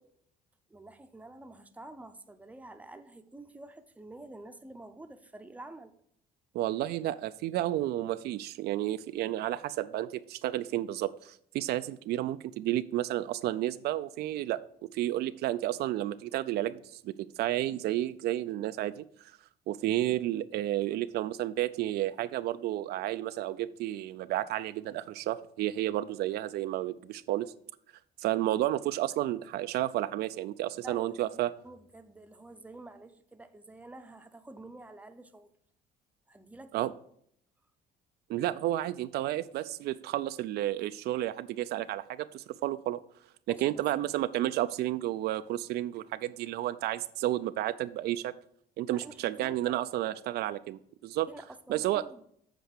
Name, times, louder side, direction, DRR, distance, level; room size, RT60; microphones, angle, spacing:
voice 1, 0.7-5.9 30.8-31.4 31.6-35.5 36.3-36.9 43.5-43.9 48.9-49.8 51.3-52.2, right 2 dB, 10° right, 0.7 m, -48 dB
voice 2, 6.5-14.6 14.9-16.8 17.0-17.1 17.4-19.3 19.7-27.5 28.2-31.5 36.7-36.9 38.3-43.0 43.5-48.3 48.8-51.3 51.7-52.0, right 14 dB, 70° right, 0.4 m, -31 dB
8.1 x 4.5 x 6.5 m
cardioid pair, 110°, 17 cm